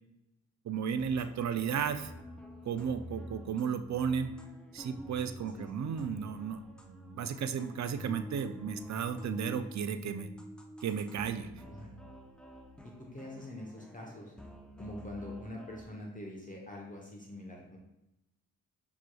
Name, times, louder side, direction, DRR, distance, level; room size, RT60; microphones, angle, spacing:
voice 1, 0.6-2.1 2.7-4.3 4.7-10.3 10.8-11.5, right 7 dB, 50° right, 10 dB, 0.5 m, -34 dB
sound 1, 1.0-15.9, equal, 5° left, 0.5 m, -48 dB
voice 2, 11.6-12.0 12.8-14.3 14.8-17.8, left 1 dB, 20° left, -1 dB, 0.8 m, -45 dB
6.1 x 3.0 x 2.3 m, 0.91 s
cardioid pair, 60°, 35 cm